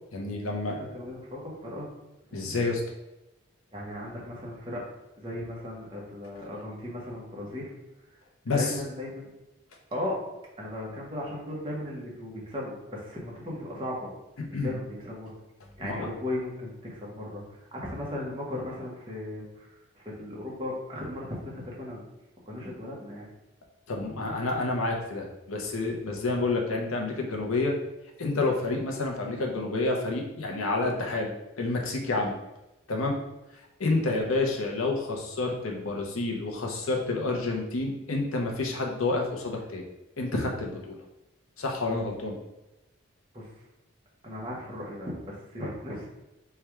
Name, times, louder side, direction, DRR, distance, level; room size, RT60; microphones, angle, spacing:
voice 1, 0.1-0.8 2.3-2.8 8.5-8.7 14.5-14.7 15.8-16.1 23.9-27.7 28.2-32.3 32.9-33.2 33.8-39.8 40.2-40.9 41.6-42.4, left 3 dB, 85° left, 0 dB, 0.7 m, -29 dB
voice 2, 0.8-1.9 2.3-2.7 3.7-4.8 5.2-7.7 8.5-9.3 9.9-10.2 10.6-14.1 14.5-15.4 15.8-22.0 22.5-23.3 34.0-34.2 43.3-43.5 44.2-46.1, left 1 dB, 25° right, -4 dB, 0.9 m, -37 dB
3.3 x 2.4 x 4.4 m, 0.97 s
head